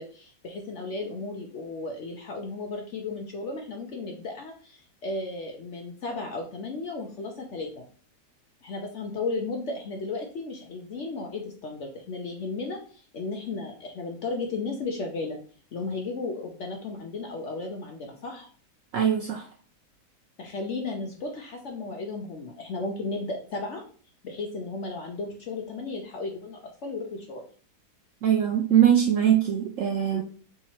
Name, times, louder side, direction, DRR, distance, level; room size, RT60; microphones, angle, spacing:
voice 1, 0.0-7.8 8.6-15.4 15.7-18.5 20.4-23.8 24.2-27.4 30.1-30.2, left 3 dB, 70° left, 2 dB, 0.7 m, -34 dB
voice 2, 18.9-19.5 28.2-30.2, right 9 dB, 80° right, 2 dB, 0.6 m, -22 dB
3.6 x 2.9 x 4.2 m, 0.43 s
omnidirectional pair, 1.9 m